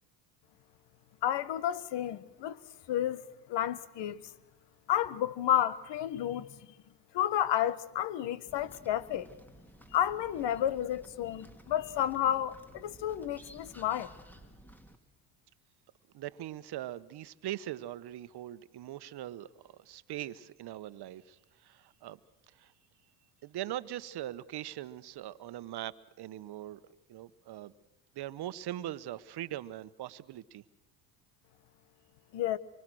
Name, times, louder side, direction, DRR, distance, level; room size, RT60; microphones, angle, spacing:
voice 1, 1.2-2.6 2.9-3.2 3.5-4.2 4.9-6.5 7.1-9.3 9.9-14.1 32.3-32.6, left 11 dB, 60° left, 1.6 m, -31 dB
sound 1, 8.4-15.0, equal, 5° left, 2.4 m, -54 dB
voice 2, 16.1-22.2 22.6-22.7 23.4-26.8 27.1-27.7 28.1-30.6, right 13 dB, 55° right, 1.2 m, -41 dB
26.0 x 24.0 x 6.3 m
supercardioid pair, 80°, 48 cm